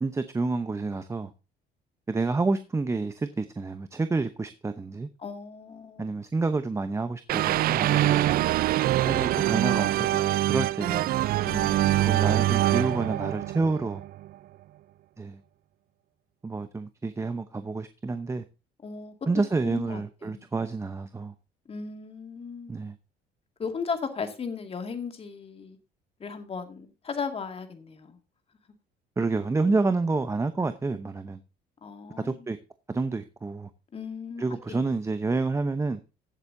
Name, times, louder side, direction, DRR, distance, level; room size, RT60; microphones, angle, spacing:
voice 1, 0.0-1.3 2.1-5.1 6.0-8.2 9.0-11.1 12.0-14.0 15.2-15.4 16.4-18.4 19.3-21.3 22.7-23.0 29.2-31.4 32.2-32.6 32.9-33.7 34.4-36.0, right 3 dB, 15° right, 0.8 m, -29 dB
voice 2, 5.2-6.1 8.0-8.5 11.4-12.2 18.8-19.1 19.6-20.5 21.7-22.7 23.6-25.8 26.2-28.2 31.8-32.5 33.9-34.9, left 5 dB, 35° left, 2.2 m, -37 dB
sound 1, 7.3-14.3, right 14 dB, 60° right, 0.4 m, -24 dB
16.0 x 8.0 x 2.7 m
cardioid pair, 110°, 17 cm